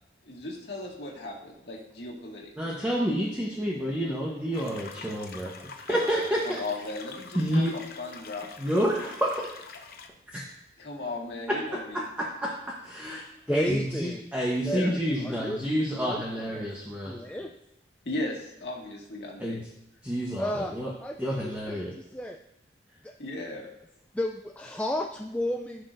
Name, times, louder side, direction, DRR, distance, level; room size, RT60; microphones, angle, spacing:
voice 1, 0.2-2.5 5.9-6.0 6.4-8.5 10.8-12.0 14.6-14.9 18.0-19.6 23.2-23.7, left 2 dB, 70° left, -1 dB, 2.0 m, -36 dB
voice 2, 2.6-5.5 5.8-6.6 7.3-7.7 8.6-9.4 10.3-10.4 11.5-17.2 19.4-19.6 20.0-20.9 21.2-21.9, equal, 10° right, -4 dB, 1.1 m, -29 dB
sound 1, 4.5-10.1, left 5 dB, 55° left, 0.8 m, -45 dB
voice 3, 13.5-14.2 14.6-15.6 16.0-16.7 17.1-17.5 20.4-20.7 21.0-22.4 23.0-23.1 24.1-25.8, left 1 dB, 5° left, 2 dB, 0.3 m, -33 dB
14.5 x 6.0 x 2.6 m, 0.86 s
head